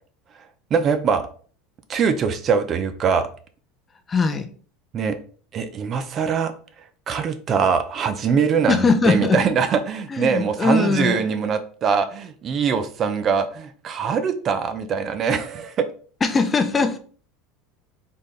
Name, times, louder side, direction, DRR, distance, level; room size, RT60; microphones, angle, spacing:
voice 1, 0.7-1.2 1.9-3.3 4.9-5.2 5.5-6.5 7.1-15.9, right 6 dB, 35° right, 10 dB, 0.5 m, -22 dB
voice 2, 4.1-4.5 8.7-9.4 10.1-11.2 16.2-17.0, left 4 dB, 20° left, 9 dB, 0.5 m, -20 dB
4.2 x 3.6 x 3.2 m, 0.42 s
supercardioid pair, 130°, 0 cm